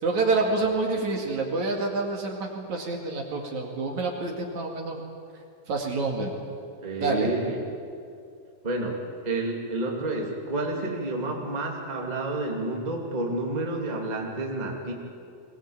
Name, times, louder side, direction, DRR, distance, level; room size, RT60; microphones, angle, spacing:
voice 1, 0.0-5.0 5.7-6.3 7.0-7.3, right 3 dB, 55° right, 1 dB, 3.4 m, -27 dB
voice 2, 6.8-7.6 8.6-9.0 9.2-14.9, right 2 dB, 15° right, 0 dB, 2.2 m, -29 dB
22.5 x 19.0 x 8.8 m, 2.4 s
omnidirectional pair, 4.2 m